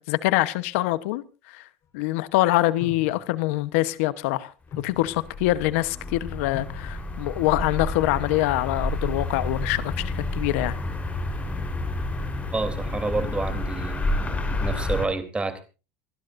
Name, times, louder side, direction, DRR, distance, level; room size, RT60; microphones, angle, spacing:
voice 1, 0.0-1.7 1.9-10.8, left 17 dB, 80° left, 1.0 m, -25 dB
sound 1, 2.8-3.5 4.4-5.4 6.0-6.1 6.5-7.5, left 6 dB, 45° left, 4.5 m, -40 dB
sound 2, 4.7-15.1, left 2 dB, 20° left, 4.1 m, -30 dB
voice 2, 12.5-15.6, right 3 dB, 15° right, 3.2 m, -29 dB
28.0 x 12.0 x 2.6 m
supercardioid pair, 110°, 7 cm